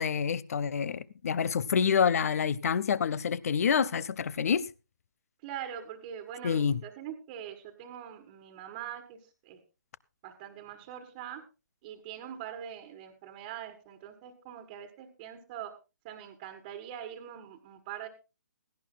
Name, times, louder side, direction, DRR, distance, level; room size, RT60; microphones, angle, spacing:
voice 1, 0.0-4.7 6.4-6.8, left 7 dB, 50° left, 0.7 m, -27 dB
voice 2, 5.4-9.2 9.4-9.6 10.2-11.4 11.8-15.7 16.0-18.1, right 10 dB, 30° right, 1.6 m, -43 dB
17.5 x 16.5 x 2.2 m
figure-of-eight pair, 140°, 10 cm